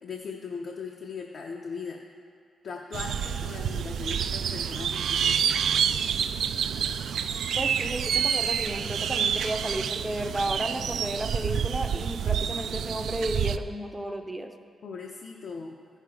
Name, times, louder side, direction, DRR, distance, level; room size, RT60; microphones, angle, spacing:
voice 1, 0.0-2.0 2.6-5.4 14.8-15.8, left 5 dB, 60° left, 0 dB, 0.7 m, -38 dB
sound 1, 2.9-13.6, right 8 dB, 75° right, 0.4 m, -28 dB
voice 2, 7.6-14.5, right 1 dB, 10° right, 6 dB, 0.6 m, -33 dB
15.0 x 6.8 x 4.8 m, 2.4 s
wide cardioid pair, 165°, 0 cm